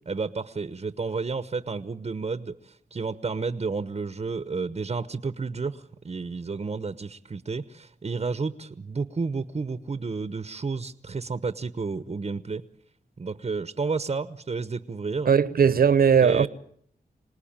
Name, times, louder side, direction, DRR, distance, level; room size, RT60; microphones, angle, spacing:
voice 1, 0.1-12.6 13.2-15.3 16.2-16.5, right 4 dB, 40° right, 1.0 m, -31 dB
voice 2, 15.3-16.5, right 7 dB, 65° right, 1.2 m, -19 dB
27.5 x 19.0 x 8.9 m
cardioid pair, 75°, 16 cm